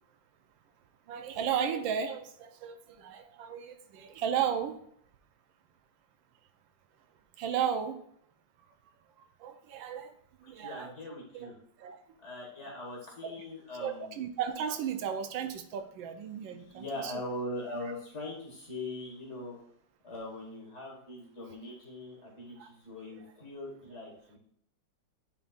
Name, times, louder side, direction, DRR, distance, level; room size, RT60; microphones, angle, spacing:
voice 1, 1.1-4.7 7.4-8.0 9.4-10.1 10.5-10.9 11.3-11.5 11.8-12.0 13.2-13.3 13.8-17.1 22.6-22.7, right 8 dB, 85° right, 7 dB, 1.5 m, -34 dB
voice 2, 10.6-11.6 12.2-14.2 16.6-19.6 20.0-24.4, left 1 dB, 40° left, -2 dB, 2.0 m, -41 dB
9.0 x 5.3 x 2.5 m, 0.67 s
omnidirectional pair, 2.0 m